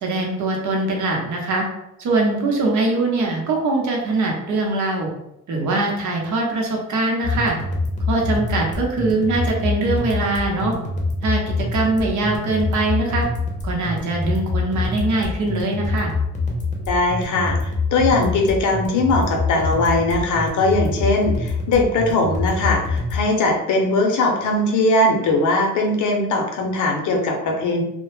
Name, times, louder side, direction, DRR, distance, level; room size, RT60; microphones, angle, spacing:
voice 1, 0.0-1.7 2.0-5.1 5.5-7.6 8.1-10.7 11.2-13.3 13.6-16.1, right 2 dB, 65° right, 0 dB, 0.8 m, -22 dB
sound 1, 7.2-23.2, left 3 dB, 25° left, 0.6 m, -25 dB
voice 2, 16.8-27.8, left 2 dB, 70° left, 2 dB, 0.7 m, -20 dB
2.2 x 2.0 x 3.0 m, 0.84 s
cardioid pair, 95°, 31 cm